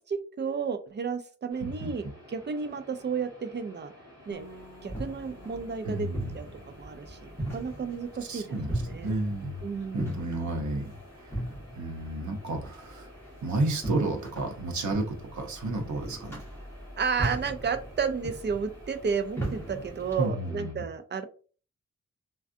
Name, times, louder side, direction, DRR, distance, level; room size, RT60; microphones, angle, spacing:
voice 1, 0.1-3.9 4.3-4.4 4.8-6.1 6.3-8.5 8.9-9.1 9.6-10.1 17.0-21.2, right 6 dB, 40° right, 9 dB, 0.4 m, -32 dB
sound 1, 1.5-20.7, left 1 dB, 15° right, 1.4 m, -52 dB
voice 2, 1.6-1.9 5.8-6.4 8.3-9.6 9.9-11.4 11.8-13.1 13.4-16.4 20.2-20.8, right 2 dB, 75° right, 3 dB, 0.8 m, -32 dB
Bass guitar, 4.3-10.6, left 2 dB, 35° left, 0.5 m, -55 dB
sound 2, 4.4-20.3, right 1 dB, 10° left, 1.6 m, -38 dB
3.5 x 2.3 x 2.5 m, 0.38 s
wide cardioid pair, 145°, 29 cm